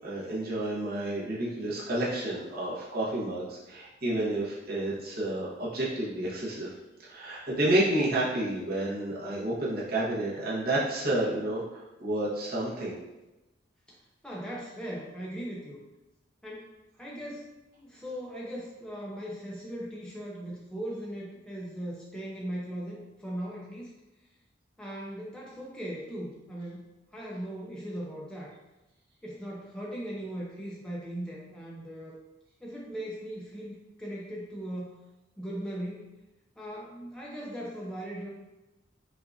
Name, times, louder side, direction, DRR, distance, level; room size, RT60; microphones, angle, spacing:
voice 1, 0.0-6.7 7.0-13.0, right 1 dB, 50° right, -7 dB, 1.0 m, -30 dB
voice 2, 13.9-15.8 16.4-17.5 17.8-23.9 24.8-26.8 27.1-28.5 29.2-32.2 32.6-34.9 35.4-36.1 36.6-38.3, equal, 5° left, -5 dB, 0.5 m, -39 dB
5.5 x 2.4 x 2.6 m, 1.0 s
head